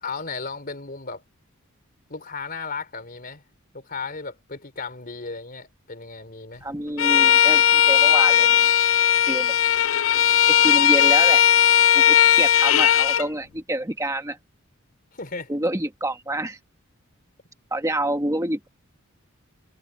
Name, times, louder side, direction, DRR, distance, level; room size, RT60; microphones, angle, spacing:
voice 1, 0.0-1.2 2.1-3.4 3.7-6.6 15.1-15.5, left 4 dB, 45° left, 3.4 m, -35 dB
voice 2, 6.6-8.6 9.3-9.5 10.5-11.4 11.9-14.4 15.5-16.6 17.7-18.7, right 1 dB, 15° right, 1.4 m, -27 dB
Bowed string instrument, 7.0-13.3, left 10 dB, 65° left, 0.5 m, -17 dB
head